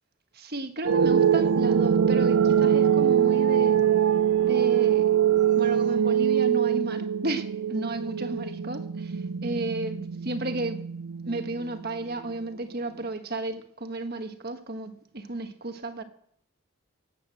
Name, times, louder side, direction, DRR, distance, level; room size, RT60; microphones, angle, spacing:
voice 1, 0.3-3.8 4.4-5.1 5.5-10.8 11.2-16.0, right 2 dB, 45° right, 1.5 m, -33 dB
sound 1, 0.8-11.9, right 9 dB, 90° right, 0.5 m, -23 dB
18.5 x 8.4 x 7.9 m
head